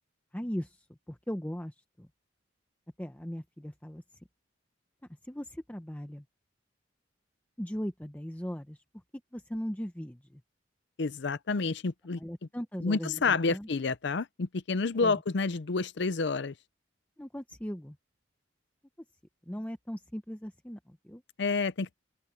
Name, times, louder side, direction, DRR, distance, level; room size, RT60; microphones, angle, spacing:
voice 1, 0.3-2.1 3.0-4.0 5.2-6.2 7.6-8.8 9.3-10.4 12.2-13.7 15.0-15.2 17.2-18.0 19.5-21.2, equal, 10° left, 0.7 m, -38 dB
voice 2, 11.0-12.2 12.8-16.5 21.4-21.9, left 4 dB, 60° left, 0.6 m, -29 dB
open air
head